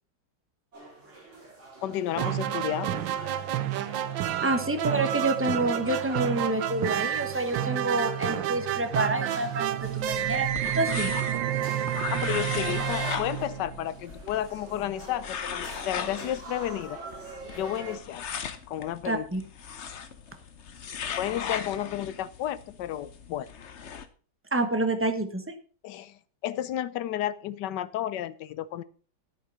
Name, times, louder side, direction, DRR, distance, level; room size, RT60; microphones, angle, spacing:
sound 1, 0.7-18.0, right 2 dB, 30° right, 3.8 m, -46 dB
voice 1, 1.8-3.0 12.1-17.0 17.5-18.2 18.7-19.3 21.2-23.5 25.8-28.8, left 11 dB, 70° left, 16 dB, 1.1 m, -32 dB
sound 2, 2.1-14.0, right 12 dB, 70° right, 1.3 m, -30 dB
voice 2, 4.4-10.5 10.7-11.1 19.0-19.4 24.5-25.5, right 2 dB, 10° right, 7 dB, 0.7 m, -28 dB
sound 3, 9.8-24.1, left 7 dB, 50° left, 0.8 m, -38 dB
10.5 x 8.7 x 5.4 m, 0.40 s
omnidirectional pair, 2.3 m